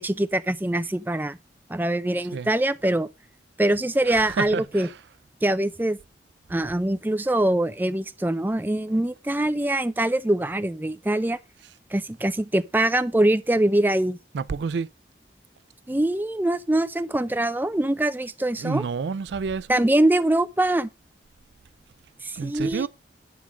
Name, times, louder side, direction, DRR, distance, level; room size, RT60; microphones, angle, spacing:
voice 1, 0.0-1.4 1.7-3.1 3.6-4.9 5.4-6.0 6.5-11.4 11.9-14.2 15.9-18.8 19.7-20.9 22.2-22.9, right 1 dB, 10° right, 0.4 m, -23 dB
voice 2, 4.1-4.9 14.3-14.9 18.6-19.8 22.4-22.9, right 5 dB, 80° right, 0.4 m, -29 dB
9.4 x 3.7 x 5.9 m
head